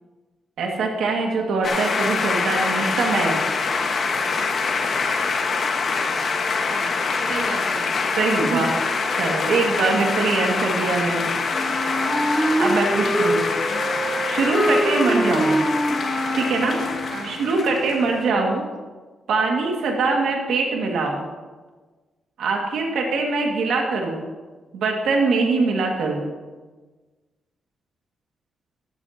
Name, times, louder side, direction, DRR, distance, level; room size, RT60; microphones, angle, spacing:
voice 1, 0.6-3.4 8.2-8.7 9.1-11.3 12.2-13.4 14.3-15.6 16.3-16.8 17.2-18.6 19.3-21.3 22.4-24.3 24.7-26.3, right 3 dB, 85° right, 0 dB, 2.0 m, -23 dB
sound 1, 1.6-18.3, left 4 dB, 55° left, 1.4 m, -25 dB
voice 2, 6.7-8.0 8.4-8.7 15.1-15.4 17.1-17.4 18.3-18.6, right 4 dB, 70° right, 3 dB, 1.6 m, -31 dB
Wind instrument woodwind instrument, 11.5-17.3, right 1 dB, 10° right, 2.1 m, -24 dB
16.0 x 13.0 x 2.9 m, 1.3 s
cardioid pair, 135°, 0 cm